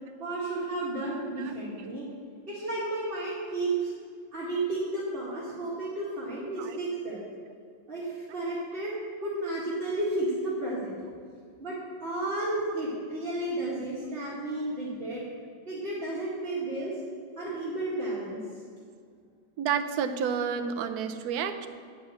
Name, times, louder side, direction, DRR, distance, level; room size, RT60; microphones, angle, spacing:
voice 1, 0.2-2.1 2.5-3.9 4.3-7.2 7.9-11.1 11.6-15.3 15.7-17.0 17.4-18.4, right 2 dB, 30° right, -9 dB, 1.9 m, -32 dB
voice 2, 1.4-1.9 6.6-6.8 13.9-14.0 19.6-21.7, right 7 dB, 75° right, 8 dB, 0.8 m, -31 dB
8.9 x 5.6 x 8.1 m, 2.1 s
omnidirectional pair, 2.3 m